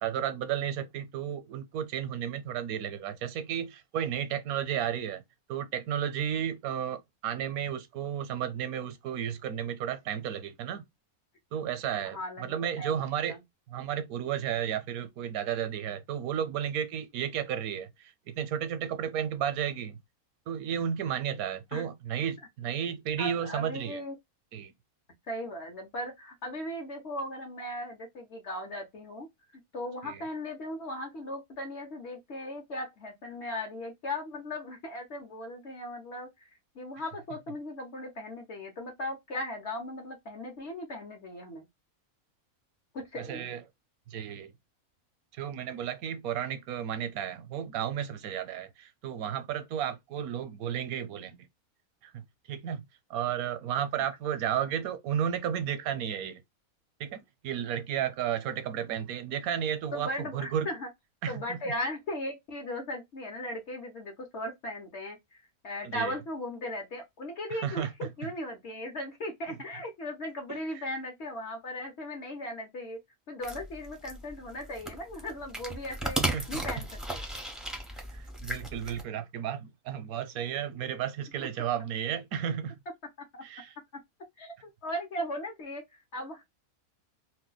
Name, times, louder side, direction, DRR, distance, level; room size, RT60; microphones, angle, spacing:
voice 1, 0.0-5.2 5.5-10.8 11.5-13.4 13.7-20.0 20.5-24.0 24.5-24.7 30.0-30.2 43.1-43.6 44.1-44.5 45.3-51.4 52.0-52.8 53.1-56.4 57.0-60.7 61.2-61.6 65.8-66.2 67.5-68.1 70.5-70.8 76.3-76.6 78.1-82.8 83.4-83.7, right 9 dB, 80° right, 1.1 m, -33 dB
voice 2, 12.0-13.0 13.3-13.4 21.7-21.9 23.2-24.1 25.3-29.3 29.5-36.5 36.7-41.7 42.9-43.5 54.0-54.1 59.9-60.9 61.3-65.2 65.6-73.0 73.3-77.2 83.3-83.4 84.4-86.4, left 1 dB, 55° left, 1.0 m, -38 dB
sound 1, 73.4-79.0, right 1 dB, ahead, 0.4 m, -36 dB
2.7 x 2.2 x 3.8 m
omnidirectional pair, 1.5 m